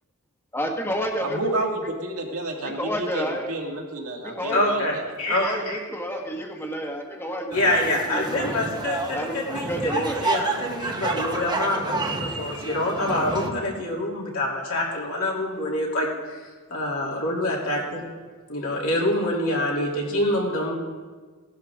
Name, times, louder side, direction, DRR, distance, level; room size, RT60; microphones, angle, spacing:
voice 1, 0.5-1.4 2.6-3.5 4.2-4.7 5.4-8.6 9.1-10.2, equal, 10° left, 2 dB, 1.4 m, -30 dB
voice 2, 1.2-5.1, right 2 dB, 70° right, 1 dB, 2.1 m, -30 dB
voice 3, 4.5-5.8 7.5-16.1 16.7-17.8 18.5-20.8, left 1 dB, 70° left, -3 dB, 3.1 m, -26 dB
sound 1, 7.5-13.5, right 3 dB, 20° right, 1.1 m, -29 dB
17.5 x 11.5 x 3.7 m, 1.5 s
head